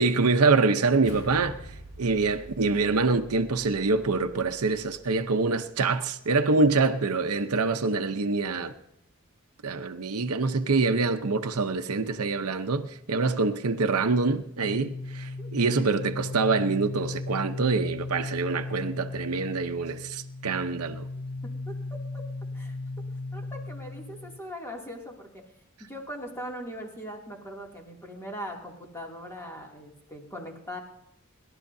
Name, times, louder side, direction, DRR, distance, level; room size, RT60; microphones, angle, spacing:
voice 1, 0.0-1.6 2.0-8.7 9.6-21.1, right 3 dB, 80° right, 0.8 m, -25 dB
sound 1, 1.0-5.6, right 1 dB, 90° left, 4.8 m, -47 dB
sound 2, 14.6-24.4, left 2 dB, 65° left, 0.5 m, -36 dB
voice 2, 21.4-22.2 22.5-22.8 23.3-25.4 25.8-30.8, equal, 10° left, 2.6 m, -40 dB
28.5 x 12.5 x 2.7 m
head